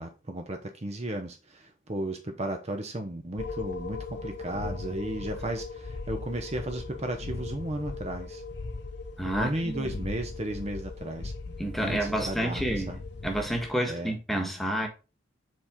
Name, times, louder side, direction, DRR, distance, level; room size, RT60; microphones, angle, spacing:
voice 1, 0.0-8.4 9.3-11.3 11.8-12.6 12.9-13.0 13.9-14.1, right 1 dB, 35° right, 0.8 m, -34 dB
sound 1, 3.4-13.7, left 3 dB, 65° left, 0.7 m, -38 dB
voice 2, 9.2-9.9 11.5-12.9 13.2-14.9, right 1 dB, ahead, 1.4 m, -30 dB
7.6 x 4.2 x 3.7 m
head